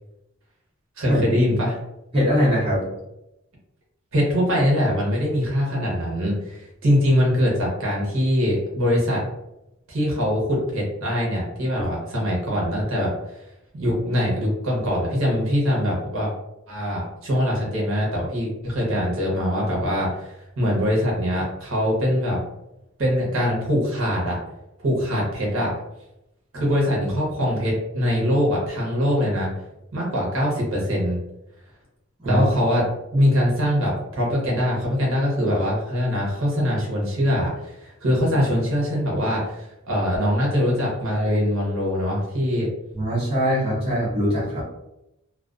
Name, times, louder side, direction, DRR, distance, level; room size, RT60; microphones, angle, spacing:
voice 1, 1.0-1.8 4.1-9.2 9.9-13.1 13.7-16.3 16.7-22.4 23.0-24.4 24.8-25.7 26.5-29.5 29.9-31.2 32.2-32.8 33.1-42.7, equal, 60° right, -3 dB, 0.8 m, -23 dB
voice 2, 2.1-2.9 32.2-32.4 42.9-44.6, equal, 25° right, -7 dB, 0.7 m, -21 dB
2.3 x 2.2 x 2.4 m, 0.88 s
head